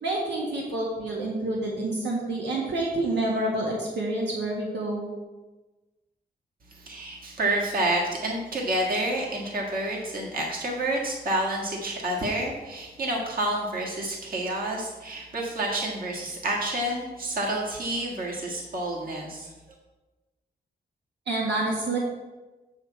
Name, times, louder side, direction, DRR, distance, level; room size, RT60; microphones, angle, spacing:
voice 1, 0.0-5.1 21.3-22.0, right 2 dB, 90° right, -3 dB, 1.6 m, -28 dB
voice 2, 6.8-19.5, right 1 dB, 55° right, -2 dB, 1.7 m, -29 dB
8.4 x 7.2 x 4.6 m, 1.2 s
wide cardioid pair, 140°, 18 cm